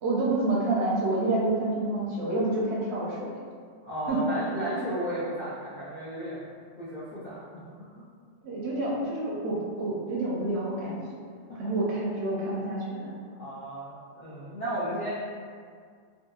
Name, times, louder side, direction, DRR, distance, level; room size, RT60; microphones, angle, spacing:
voice 1, 0.0-3.3 4.1-4.3 8.4-11.0 11.6-13.1, right 2 dB, 65° right, -5 dB, 0.8 m, -28 dB
voice 2, 3.8-6.4 6.8-8.0 11.5-11.7 13.4-15.1, right 1 dB, 55° left, -10 dB, 0.5 m, -34 dB
2.7 x 2.4 x 2.3 m, 2.1 s
omnidirectional pair, 1.3 m